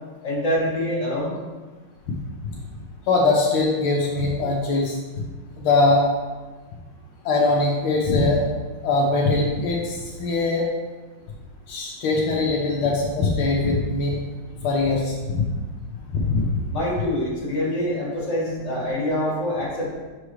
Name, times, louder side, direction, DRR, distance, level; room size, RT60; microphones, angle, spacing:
voice 1, 0.2-1.3 16.7-19.9, left 1 dB, 35° left, -7 dB, 2.5 m, -25 dB
voice 2, 3.1-5.0 5.6-6.1 7.2-8.4 8.8-10.6 11.7-14.2 14.6-15.5 16.2-16.5, left 3 dB, 80° left, -2 dB, 1.6 m, -21 dB
6.1 x 6.0 x 3.2 m, 1.3 s
omnidirectional pair, 2.3 m